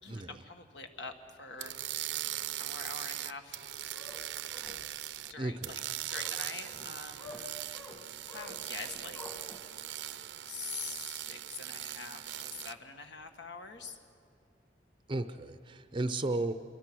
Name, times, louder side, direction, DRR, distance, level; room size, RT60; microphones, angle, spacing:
voice 1, 0.0-1.8 2.6-3.6 5.3-5.8 6.1-7.6 7.9-9.2 10.4-14.0, left 4 dB, 80° left, 6 dB, 1.8 m, -45 dB
sound 1, 1.6-5.3 5.6-12.7, right 13 dB, 80° right, 0.6 m, -40 dB
sound 2, 3.6-9.6, left 2 dB, 20° left, 1.6 m, -50 dB
voice 2, 5.4-5.7 15.1-16.5, right 2 dB, 30° right, 10 dB, 0.6 m, -34 dB
27.0 x 22.5 x 6.2 m, 2.4 s
head